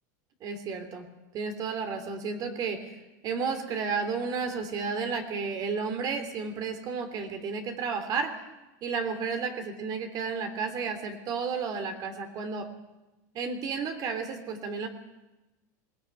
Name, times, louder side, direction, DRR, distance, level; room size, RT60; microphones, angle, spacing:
voice 1, 0.4-1.1 1.3-2.9 3.2-8.3 8.8-12.7 13.3-14.9, right 5 dB, 40° right, 7 dB, 3.0 m, -32 dB
21.0 x 16.5 x 9.7 m, 1.1 s
supercardioid pair, 135°, 10 cm